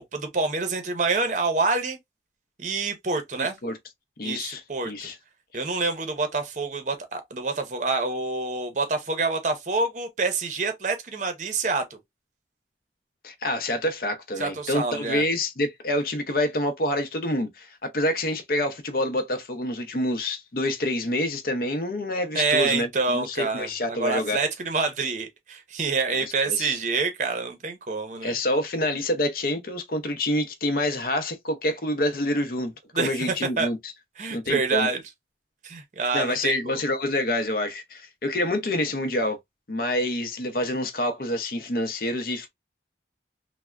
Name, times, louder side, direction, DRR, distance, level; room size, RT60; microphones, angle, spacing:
voice 1, 0.1-2.0 2.6-3.6 4.2-5.1 5.5-12.0 14.4-15.2 22.3-28.3 32.9-33.1 33.6-33.7 34.2-35.0 35.6-36.8, right 4 dB, 45° right, 0.6 m, -27 dB
voice 2, 4.2-5.2 13.2-24.4 26.1-26.8 28.2-32.7 33.0-33.9 34.3-34.9 36.1-39.4 39.7-42.5, left 1 dB, 55° left, 0.6 m, -27 dB
3.3 x 2.1 x 2.3 m
head